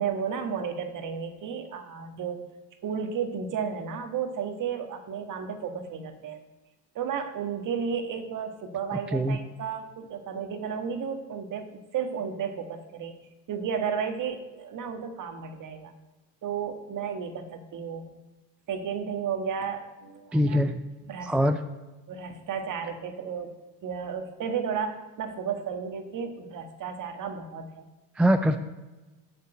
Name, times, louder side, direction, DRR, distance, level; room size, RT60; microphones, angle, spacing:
voice 1, 0.0-2.4 2.8-6.4 6.9-13.1 13.5-15.9 16.4-18.1 18.7-20.6 21.1-21.3 22.1-23.5 23.8-27.9, right 7 dB, 45° right, 6 dB, 1.6 m, -33 dB
voice 2, 20.3-20.8 21.2-21.6 28.2-28.6, equal, 5° right, 8 dB, 0.3 m, -23 dB
7.5 x 6.7 x 7.9 m, 1.1 s
supercardioid pair, 95°, 44 cm